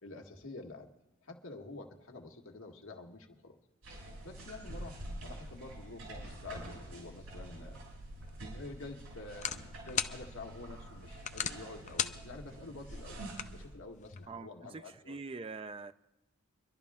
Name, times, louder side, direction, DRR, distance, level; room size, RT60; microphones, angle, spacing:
voice 1, 0.0-0.9 1.2-3.6 4.2-7.8 8.5-13.2 13.5-15.2, left 2 dB, 80° left, 1.6 m, -48 dB
sound 1, 3.8-13.7, right 1 dB, 90° right, 7.4 m, -47 dB
sound 2, 8.2-14.3, left 8 dB, 35° left, 0.5 m, -41 dB
voice 2, 14.7-15.9, right 4 dB, 25° right, 0.4 m, -43 dB
25.0 x 11.5 x 3.6 m
head